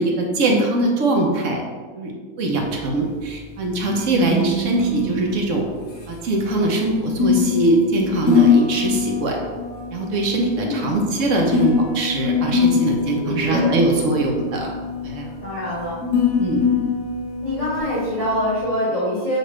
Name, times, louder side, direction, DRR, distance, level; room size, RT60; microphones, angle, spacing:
voice 1, 0.0-1.6 2.0-5.6 6.1-9.4 9.9-14.7 15.0-15.3 16.4-16.6, right 2 dB, 65° right, 1 dB, 1.0 m, -22 dB
sound 1, 2.5-18.6, left 5 dB, 60° left, 1.2 m, -23 dB
voice 2, 10.5-11.2 13.2-13.8 15.4-16.0 17.4-19.4, equal, 30° left, -9 dB, 1.0 m, -25 dB
6.6 x 2.5 x 3.1 m, 1.4 s
omnidirectional pair, 1.5 m